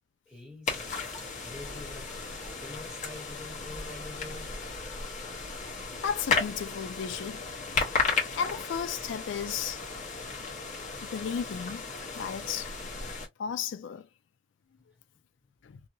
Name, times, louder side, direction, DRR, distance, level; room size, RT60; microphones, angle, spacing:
voice 1, 0.2-0.9 1.4-4.7, left 2 dB, 5° right, 1.5 m, -46 dB
sound 1, 0.7-13.3, left 4 dB, 40° left, 1.0 m, -34 dB
voice 2, 6.0-7.4 8.4-9.8 11.1-11.8 12.2-12.7 13.4-14.1 15.6-15.8, left 7 dB, 65° left, 0.3 m, -34 dB
2.7 x 2.7 x 2.7 m
head